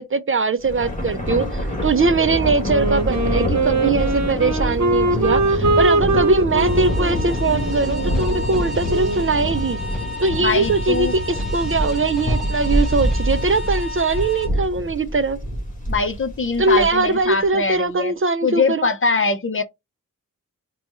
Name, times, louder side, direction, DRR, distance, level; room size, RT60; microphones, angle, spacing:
voice 1, 0.0-9.8 10.2-15.4 16.6-18.9, right 3 dB, 40° right, 0.4 m, -21 dB
Thunder, 0.6-17.2, equal, 25° left, 1.8 m, -25 dB
Wind instrument woodwind instrument, 2.6-9.4, right 2 dB, 55° right, 0.9 m, -22 dB
sound 1, 6.6-14.5, left 2 dB, ahead, 1.4 m, -33 dB
voice 2, 10.4-11.2 15.9-18.1 18.4-19.6, left 4 dB, 40° left, 0.6 m, -22 dB
4.2 x 2.3 x 4.2 m
wide cardioid pair, 95°, 33 cm